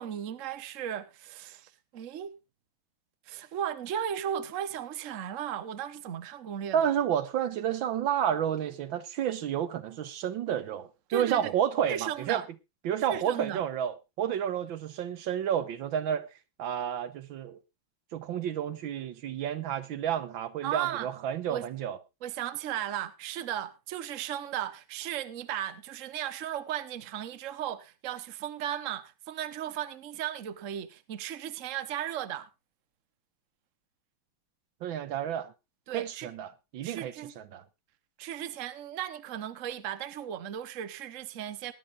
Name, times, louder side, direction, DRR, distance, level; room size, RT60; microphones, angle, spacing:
voice 1, 0.0-2.3 3.3-6.9 11.1-11.4 11.9-12.5 13.1-13.6 20.6-21.1 21.5-21.6 22.2-32.5 35.9-36.3 36.8-37.3 38.2-41.7, right 10 dB, 50° right, 1.1 m, -36 dB
voice 2, 6.7-12.4 12.8-16.3 16.6-17.6 18.1-22.0 34.8-35.5 35.9-37.6, right 9 dB, 75° right, 1.6 m, -30 dB
20.5 x 10.5 x 2.5 m
omnidirectional pair, 2.2 m